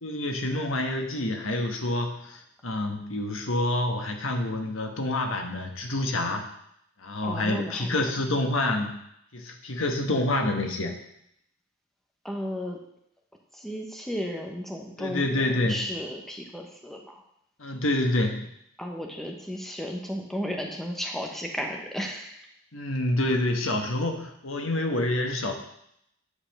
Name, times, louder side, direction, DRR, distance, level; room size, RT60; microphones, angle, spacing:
voice 1, 0.0-6.4 7.0-8.9 9.3-10.9 15.0-15.8 17.6-18.5 22.7-25.5, left 1 dB, 90° left, 4 dB, 1.5 m, -27 dB
voice 2, 7.2-8.0 12.2-12.8 13.5-17.1 18.8-22.5, equal, ahead, 1 dB, 1.1 m, -34 dB
10.0 x 5.8 x 6.6 m, 0.75 s
head